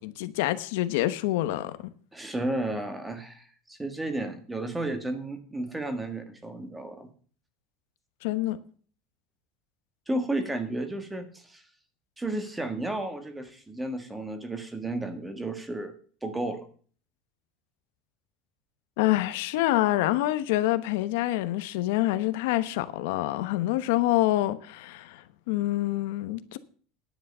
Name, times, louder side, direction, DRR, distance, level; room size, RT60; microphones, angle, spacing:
voice 1, 0.0-1.7 8.2-8.6 19.0-26.6, left 16 dB, 75° left, 1.0 m, -26 dB
voice 2, 2.1-7.1 10.1-11.6 12.2-15.9 16.2-16.7, right 2 dB, 10° right, 1.6 m, -33 dB
10.5 x 9.3 x 5.5 m
supercardioid pair, 150°, 0 cm